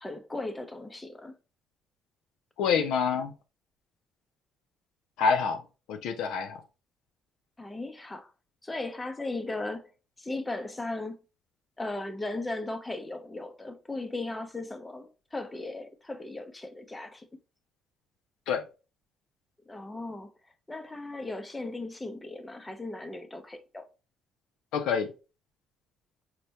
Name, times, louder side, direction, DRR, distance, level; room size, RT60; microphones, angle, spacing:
voice 1, 0.0-1.3 7.6-8.3 8.6-9.9 10.2-11.2 11.8-17.3 19.7-20.3 20.7-23.9, left 2 dB, 20° left, 0.6 m, -37 dB
voice 2, 2.6-3.3 5.2-5.6 5.9-6.6 18.5-18.6 24.7-25.1, left 6 dB, 75° left, 0.4 m, -26 dB
4.2 x 2.1 x 2.8 m
supercardioid pair, 60°, 0 cm